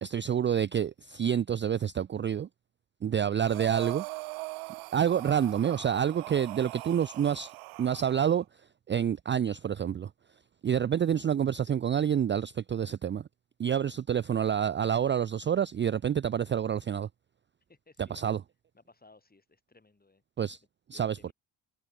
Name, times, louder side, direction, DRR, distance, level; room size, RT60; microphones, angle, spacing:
voice 1, 0.0-2.5 3.0-4.0 4.9-7.5 7.8-8.4 8.9-10.1 10.6-13.3 13.6-17.1 18.1-18.4 20.4-20.6 20.9-21.3, right 9 dB, 25° right, 0.4 m, -28 dB
Breathing, 3.4-8.4, right 27 dB, 90° right, 0.9 m, -41 dB
voice 2, 17.7-18.4 18.7-20.2 20.9-21.3, left 3 dB, 20° left, 4.3 m, -60 dB
supercardioid pair, 85°, 47 cm